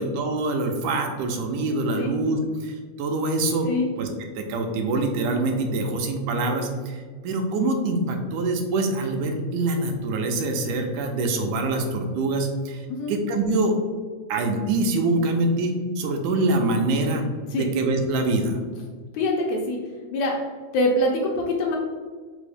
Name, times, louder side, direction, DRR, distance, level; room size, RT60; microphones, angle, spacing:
voice 1, 0.0-3.7 4.0-4.1 4.4-12.8 13.1-13.8 14.3-17.2 17.5-18.6, right 2 dB, 85° right, 4 dB, 2.0 m, -25 dB
voice 2, 19.1-19.8 20.1-20.4 20.7-21.8, left 1 dB, 75° left, 0 dB, 1.8 m, -24 dB
5.1 x 2.1 x 4.8 m, 1.5 s
omnidirectional pair, 3.5 m